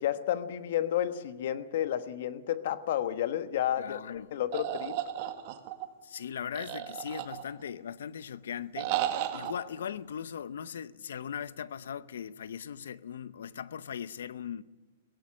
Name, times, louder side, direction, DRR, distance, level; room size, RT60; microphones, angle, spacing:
voice 1, 0.0-5.0, left 11 dB, 60° left, 1.2 m, -31 dB
voice 2, 3.8-4.3 6.0-9.0 9.3-14.6, left 8 dB, 85° left, 0.7 m, -39 dB
sound 1, 4.5-5.9 6.5-7.7 8.8-9.5, right 12 dB, 45° right, 1.6 m, -33 dB
17.0 x 17.0 x 9.8 m
hypercardioid pair, 155°, 0 cm